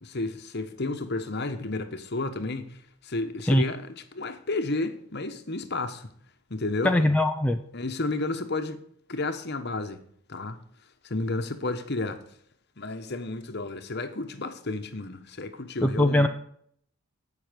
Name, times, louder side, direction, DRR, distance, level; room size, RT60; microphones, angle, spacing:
voice 1, 0.0-6.1 6.5-6.9 7.7-8.8 9.1-10.0 10.3-10.6 11.0-12.2 12.8-16.3, left 2 dB, 50° left, 1.1 m, -32 dB
voice 2, 6.8-7.6 15.8-16.3, left 1 dB, 5° left, 0.5 m, -21 dB
15.5 x 6.0 x 5.2 m
head